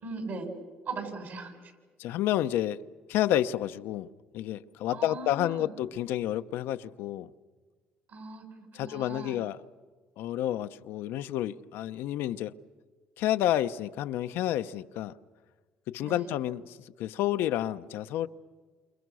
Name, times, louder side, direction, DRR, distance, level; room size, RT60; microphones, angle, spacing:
voice 1, 0.0-0.5 0.9-1.7 4.9-5.7 8.1-9.4 16.0-16.3, right 3 dB, 60° right, 7.6 m, -39 dB
voice 2, 2.0-2.8 3.1-4.1 4.3-7.3 8.7-9.6 10.2-12.5 13.2-15.1 15.9-18.3, left 12 dB, 80° left, 0.8 m, -30 dB
29.5 x 27.5 x 6.3 m
supercardioid pair, 80°, 4 cm